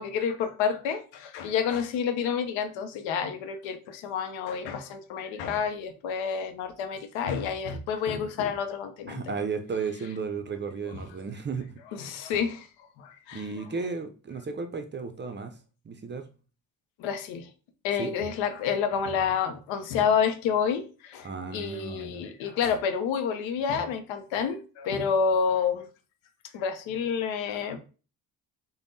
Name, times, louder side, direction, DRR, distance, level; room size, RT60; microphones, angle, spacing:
voice 1, 0.0-9.3 10.9-11.0 11.9-12.7 13.0-13.4 17.0-17.5 17.8-25.9 26.5-27.8, left 6 dB, 80° left, 0.6 m, -29 dB
voice 2, 9.1-11.7 13.3-15.6 15.9-16.3 18.0-18.1 21.2-22.2, right 5 dB, 25° right, 0.4 m, -34 dB
3.3 x 2.1 x 2.6 m
supercardioid pair, 50°, 45 cm